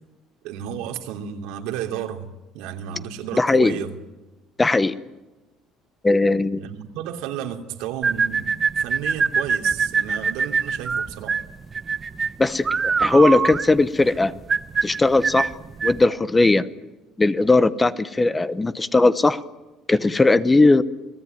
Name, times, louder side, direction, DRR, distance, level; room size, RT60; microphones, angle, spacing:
voice 1, 0.4-3.9 6.6-8.5 8.8-11.4, right 10 dB, 90° right, 4 dB, 2.8 m, -32 dB
voice 2, 3.4-3.7 4.6-5.0 6.0-6.6 12.4-14.3 14.8-15.5 15.8-16.7 17.2-19.4 19.9-20.8, left 2 dB, 10° left, 14 dB, 0.8 m, -18 dB
sound 1, 8.0-16.1, right 5 dB, 20° right, 0.8 m, -23 dB
29.0 x 19.0 x 9.4 m, 1.1 s
cardioid pair, 160°, 0 cm